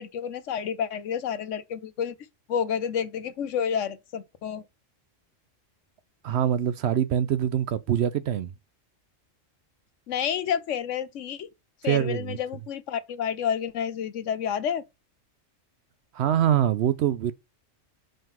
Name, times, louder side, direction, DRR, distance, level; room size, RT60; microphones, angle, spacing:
voice 1, 0.0-2.2 2.5-4.6 10.1-11.5 11.8-14.8, left 8 dB, 75° left, 1.1 m, -29 dB
voice 2, 6.2-8.5 11.8-12.4 16.1-17.3, right 10 dB, 65° right, 0.8 m, -24 dB
5.3 x 3.7 x 5.7 m
omnidirectional pair, 1.3 m